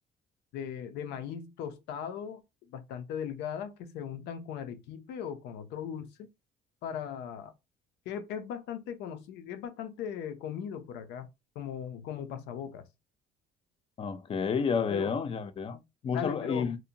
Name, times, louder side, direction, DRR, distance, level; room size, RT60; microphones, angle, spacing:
voice 1, 0.5-6.3 6.8-7.5 8.1-11.3 11.6-12.9 14.9-15.1 16.1-16.7, left 8 dB, 85° left, 0.5 m, -38 dB
voice 2, 14.0-16.8, left 6 dB, 35° left, 0.4 m, -30 dB
2.6 x 2.1 x 2.7 m
cardioid pair, 110°, 17 cm